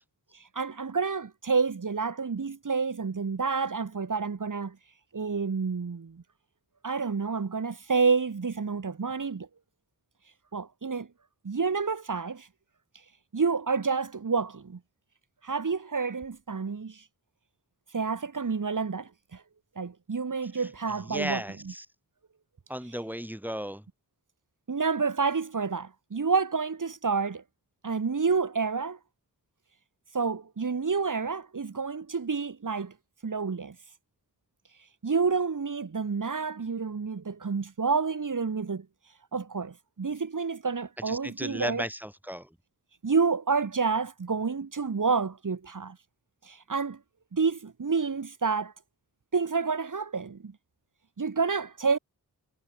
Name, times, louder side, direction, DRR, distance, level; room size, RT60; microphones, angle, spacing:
voice 1, 0.6-4.8 5.1-6.2 6.8-9.5 10.5-11.1 11.4-12.5 13.3-14.8 15.4-17.0 17.9-19.1 19.8-21.4 24.7-27.4 27.8-29.0 30.1-32.9 33.2-33.7 35.0-38.9 39.3-41.8 43.0-46.0 46.5-47.0 47.3-48.7 49.3-50.5 51.2-52.0, right 5 dB, 55° right, 2.3 m, -29 dB
voice 2, 21.0-21.9 22.7-23.8 41.1-42.5, equal, 5° right, 3.4 m, -35 dB
cardioid pair, 60°, 38 cm